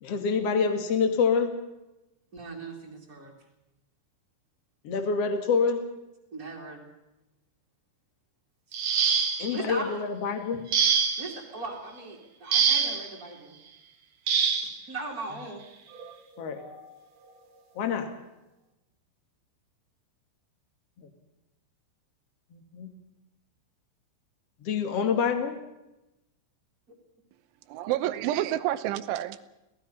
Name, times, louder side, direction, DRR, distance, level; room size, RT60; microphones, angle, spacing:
voice 1, 0.0-1.6 4.8-5.8 9.4-10.7 16.4-16.6 17.8-18.1 21.0-21.1 22.5-22.9 24.6-25.6, left 5 dB, 45° left, 6 dB, 2.2 m, -27 dB
voice 2, 2.3-3.3 6.3-6.8 9.5-10.0 10.3-10.4 11.2-13.6 14.9-15.6, right 3 dB, 25° right, -4 dB, 2.4 m, -38 dB
sound 1, 8.7-9.6 10.7-11.4 12.5-13.1 14.3-14.7 15.9-16.1 16.6-16.8, right 6 dB, 65° right, 1.7 m, -25 dB
voice 3, 27.7-29.4, right 13 dB, 80° right, 13 dB, 3.2 m, -29 dB
27.5 x 18.0 x 5.7 m, 0.96 s
omnidirectional pair, 5.7 m